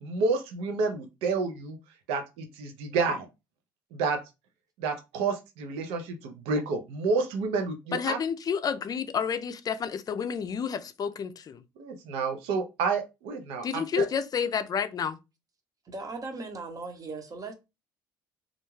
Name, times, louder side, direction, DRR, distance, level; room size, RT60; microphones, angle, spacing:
voice 1, 0.0-1.8 2.1-3.3 3.9-4.2 4.8-8.2 11.8-14.1, right 4 dB, 80° right, 0.6 m, -29 dB
voice 2, 7.9-11.6 13.6-15.2, left 7 dB, 40° left, 0.4 m, -30 dB
voice 3, 15.9-17.5, right 3 dB, 35° right, 0.8 m, -38 dB
2.4 x 2.2 x 3.1 m
supercardioid pair, 65°, 10 cm